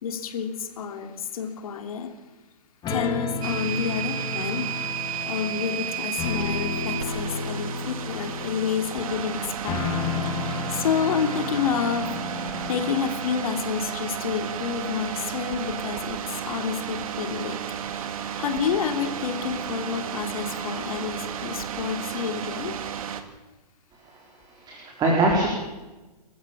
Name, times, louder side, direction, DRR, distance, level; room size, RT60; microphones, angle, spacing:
voice 1, 0.0-2.1 2.9-4.7 5.3-9.4 9.6-9.8 10.7-12.1 12.7-17.6 18.4-22.8, left 7 dB, 60° left, 6 dB, 3.2 m, -29 dB
sound 1, 2.8-13.0, left 4 dB, 20° left, 3.8 m, -32 dB
sound 2, 3.4-23.2, right 9 dB, 55° right, 2.7 m, -33 dB
voice 2, 24.0-25.5, right 2 dB, 20° right, -1 dB, 4.7 m, -24 dB
29.0 x 15.0 x 7.5 m, 1.1 s
hypercardioid pair, 135°, 21 cm